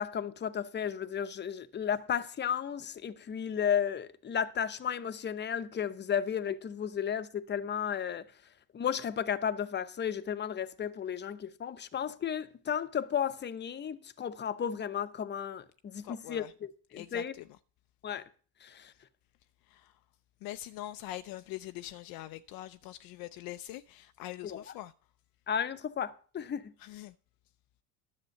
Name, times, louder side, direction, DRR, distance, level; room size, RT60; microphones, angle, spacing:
voice 1, 0.0-8.2 8.7-16.4 16.9-17.3 18.0-18.3 18.6-18.9 24.4-24.6 25.5-26.7, left 8 dB, 25° left, 0.8 m, -33 dB
voice 2, 16.0-16.5 16.9-17.5 19.6-20.0 20.4-24.9 26.8-27.1, left 14 dB, 60° left, 0.5 m, -43 dB
10.5 x 6.8 x 6.5 m
supercardioid pair, 95°, 41 cm